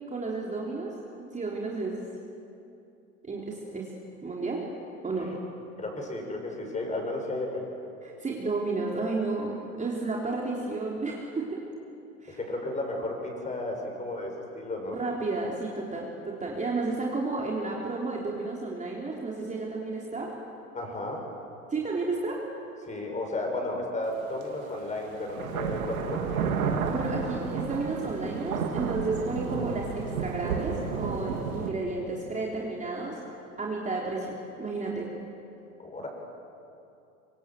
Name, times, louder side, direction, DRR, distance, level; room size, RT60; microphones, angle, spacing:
voice 1, 0.1-1.0 1.3-2.0 3.2-3.9 4.2-4.7 5.0-5.4 8.0-11.7 12.2-12.4 14.9-20.3 21.7-22.4 26.9-33.2 33.6-35.1, right 3 dB, 15° right, -2 dB, 3.7 m, -32 dB
voice 2, 5.8-7.7 12.3-15.0 20.7-21.2 22.8-26.5 35.8-36.1, left 2 dB, 15° left, 1 dB, 7.1 m, -33 dB
sound 1, 24.4-24.5 25.3-31.7, right 6 dB, 70° right, 2.6 m, -31 dB
25.5 x 25.0 x 7.8 m, 2.6 s
hypercardioid pair, 85°, 43 cm